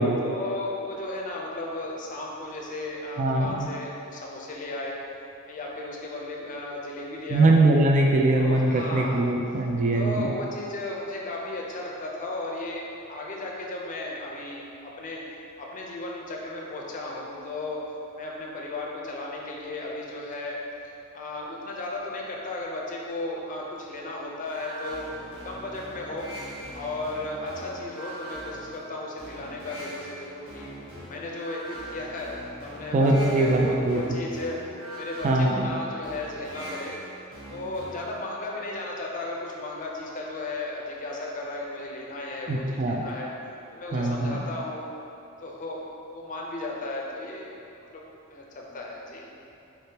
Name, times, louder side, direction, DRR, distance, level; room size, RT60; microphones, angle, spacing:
voice 1, 0.2-5.0 5.5-7.6 8.3-9.3 9.9-15.2 15.6-17.8 18.2-20.6 21.1-25.1 25.4-26.3 26.7-30.7 31.1-34.6 34.9-37.0 37.5-43.3 43.7-44.8 45.4-45.8 46.1-47.5 47.9-48.0 48.3-49.3, left 2 dB, 35° left, -2 dB, 0.5 m, -35 dB
voice 2, 3.2-3.7 7.3-10.3 32.9-34.0 35.2-35.7 42.5-43.1 43.9-44.4, right 2 dB, 35° right, 0 dB, 0.3 m, -22 dB
sound 1, 24.5-38.3, equal, 75° right, 1.2 m, -42 dB
4.1 x 3.4 x 2.8 m, 2.8 s
head